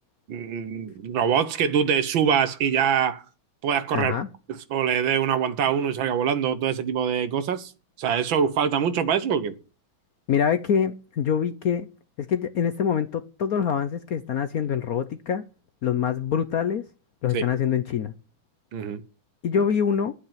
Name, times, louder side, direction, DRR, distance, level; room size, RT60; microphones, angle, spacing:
voice 1, 0.3-3.2 3.6-4.2 4.5-7.7 8.0-9.6 17.3-17.4 18.7-19.0, right 7 dB, 70° right, 1.8 m, -24 dB
voice 2, 3.9-4.3 10.3-11.9 12.2-15.4 15.8-16.8 17.2-18.1 19.4-20.1, left 7 dB, 60° left, 1.0 m, -25 dB
10.0 x 8.9 x 9.3 m
omnidirectional pair, 2.2 m